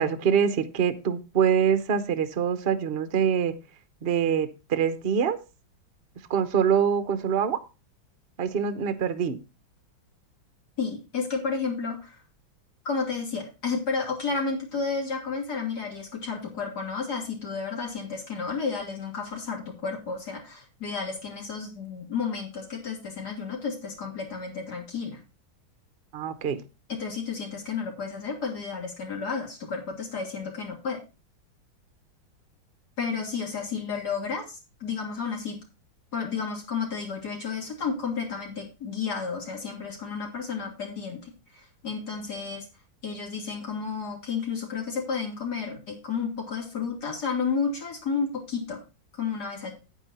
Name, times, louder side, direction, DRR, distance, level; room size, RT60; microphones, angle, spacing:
voice 1, 0.0-3.5 4.0-5.4 6.3-7.6 8.4-9.4 26.1-26.6, right 7 dB, 45° right, 11 dB, 0.8 m, -24 dB
voice 2, 10.8-12.2 12.9-25.2 26.9-31.0 33.0-35.6 36.1-42.7 43.0-48.8 49.1-49.7, left 5 dB, 50° left, 1 dB, 3.5 m, -32 dB
9.1 x 8.9 x 4.3 m, 0.29 s
omnidirectional pair, 2.2 m